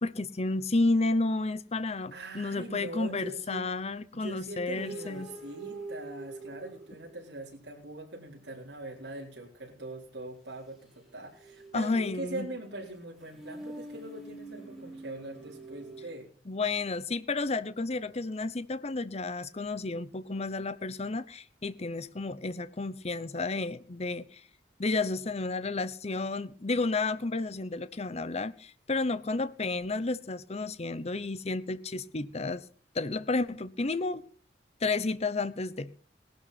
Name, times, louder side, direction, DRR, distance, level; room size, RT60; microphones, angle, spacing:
voice 1, 0.0-5.3 11.7-12.5 16.5-24.4 24.8-32.6 32.9-34.2 34.8-35.9, left 3 dB, 40° left, 15 dB, 0.9 m, -31 dB
voice 2, 2.1-3.6 4.1-16.3, right 2 dB, 75° right, -3 dB, 4.3 m, -42 dB
sound 1, 4.7-7.4 10.9-16.1, right 2 dB, ahead, 5.1 m, -45 dB
18.0 x 12.0 x 4.2 m, 0.43 s
head